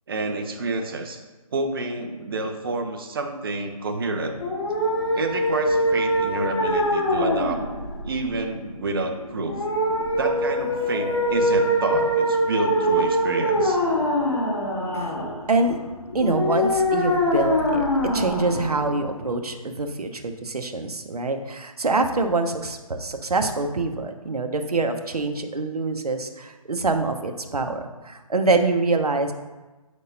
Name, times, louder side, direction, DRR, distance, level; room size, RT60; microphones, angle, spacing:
voice 1, 0.1-1.2 1.5-4.4 5.1-7.6 8.0-9.6 10.2-13.8, right 3 dB, 40° right, 4 dB, 0.9 m, -29 dB
sound 1, 4.3-19.3, equal, 40° left, 1.7 m, -24 dB
voice 2, 15.5-15.8 16.1-17.9 18.1-29.3, right 3 dB, 80° right, 6 dB, 1.0 m, -25 dB
8.7 x 6.5 x 2.7 m, 1.2 s
figure-of-eight pair, 155°, 19 cm